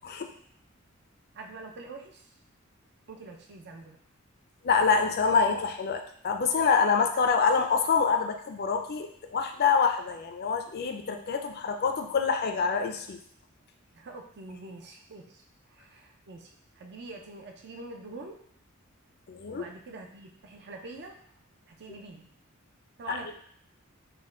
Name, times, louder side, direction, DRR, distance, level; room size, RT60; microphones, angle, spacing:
voice 1, 1.3-2.3 3.1-4.0 13.9-18.4 19.5-21.2 21.7-22.3 23.0-23.3, right 3 dB, 55° right, 3 dB, 0.5 m, -45 dB
voice 2, 4.6-13.2 19.3-19.6 23.1-23.3, left 5 dB, 50° left, 5 dB, 0.4 m, -26 dB
4.2 x 2.2 x 3.7 m, 0.63 s
head